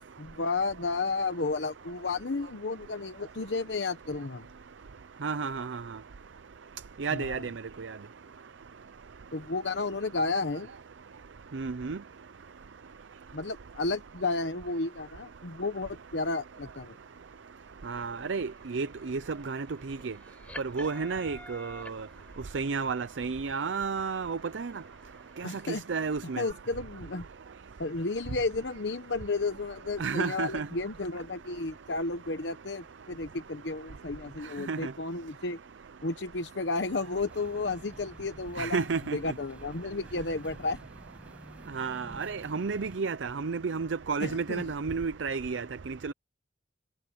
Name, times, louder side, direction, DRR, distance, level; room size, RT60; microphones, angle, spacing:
voice 1, 0.2-4.5 7.1-7.4 9.3-10.7 13.3-17.0 25.4-25.8 26.4-27.2 27.8-35.6 36.0-38.8 39.1-40.8 44.2-44.6, left 3 dB, 75° left, 1.1 m, -32 dB
voice 2, 5.2-5.8 7.0-7.5 7.8-7.9 11.5-12.0 17.9-20.1 20.7-22.0 22.5-24.7 25.4-26.4 30.0-30.7 34.7-34.9 38.6-39.2 41.7-46.1, right 5 dB, 90° right, 0.6 m, -32 dB
sound 1, 17.8-26.5, left 1 dB, 10° left, 5.0 m, -52 dB
sound 2, 37.2-43.0, equal, 5° right, 6.3 m, -51 dB
head